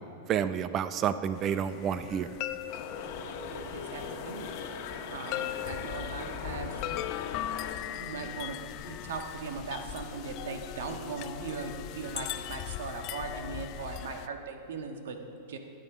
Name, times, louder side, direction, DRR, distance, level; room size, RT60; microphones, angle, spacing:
voice 1, 0.3-2.3, right 8 dB, 25° right, 13 dB, 0.5 m, -29 dB
sound 1, 1.3-14.3, left 13 dB, 40° left, 0.4 m, -39 dB
sound 2, 2.7-7.8, left 5 dB, 55° left, 1.3 m, -40 dB
voice 2, 3.5-4.5 5.1-7.0 7.9-8.6 8.9-15.6, right 4 dB, 80° right, 5 dB, 1.5 m, -39 dB
13.0 x 9.8 x 6.1 m, 2.7 s
supercardioid pair, 155°, 0 cm